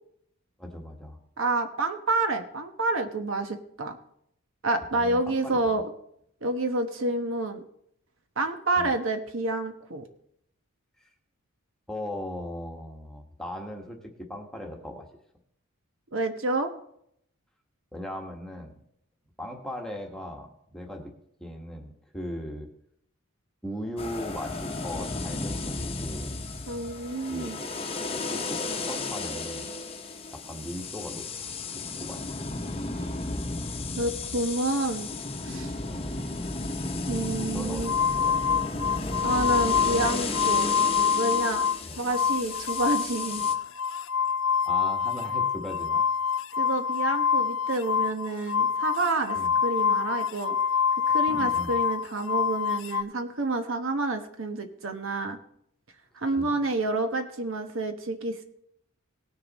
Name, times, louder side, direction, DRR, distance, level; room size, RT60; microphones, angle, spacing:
voice 1, 0.6-1.2 4.9-5.6 8.8-8.9 11.0-11.1 11.9-15.1 17.9-18.7 19.4-21.1 21.4-22.7 23.6-26.3 27.3-29.7 30.3-31.5 32.0-32.3 35.9-36.4 37.5-38.6 41.9-42.0 44.6-46.0 49.3-49.5 51.3-51.8 56.4-56.6, equal, 5° left, 2 dB, 1.4 m, -38 dB
voice 2, 1.4-4.0 4.6-5.8 6.4-7.6 8.4-10.1 16.1-16.7 26.7-27.6 34.0-35.1 35.4-35.7 37.1-37.9 39.2-40.7 41.1-41.6 42.0-43.4 46.6-50.6 51.1-55.4 56.1-58.4, right 2 dB, 60° right, 6 dB, 1.1 m, -29 dB
sound 1, 24.0-43.5, left 3 dB, 25° left, 0.9 m, -34 dB
sound 2, 37.8-41.8 42.1-53.0, left 7 dB, 60° left, 0.4 m, -26 dB
18.5 x 6.7 x 4.1 m, 0.71 s
head